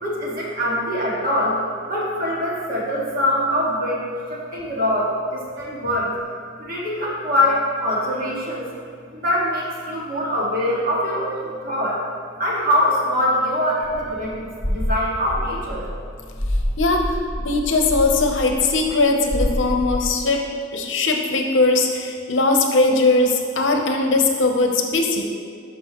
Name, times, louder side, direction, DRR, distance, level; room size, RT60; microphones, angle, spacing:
voice 1, 0.0-1.6 1.9-6.1 6.6-8.6 9.1-12.0 12.4-15.9, left 1 dB, 45° right, -5 dB, 1.9 m, -23 dB
sound 1, 13.8-20.2, equal, 20° left, 1.8 m, -27 dB
voice 2, 17.4-20.4 20.7-25.2, left 3 dB, 65° left, 3 dB, 0.8 m, -19 dB
12.0 x 5.3 x 3.0 m, 2.2 s
head